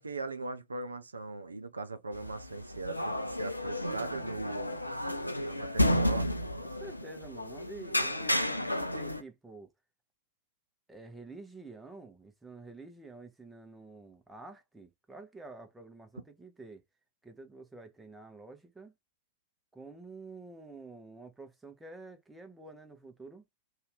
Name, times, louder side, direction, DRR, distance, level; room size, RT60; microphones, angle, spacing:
voice 1, 0.0-4.8 5.4-6.3, right 3 dB, 75° right, 0.4 m, -39 dB
sound 1, 2.1-9.2, left 1 dB, 85° left, 0.4 m, -32 dB
voice 2, 6.6-9.7 10.9-16.8 17.2-18.9 19.7-23.4, right 3 dB, 10° right, 0.7 m, -49 dB
2.7 x 2.3 x 3.1 m
figure-of-eight pair, 90°, 0 cm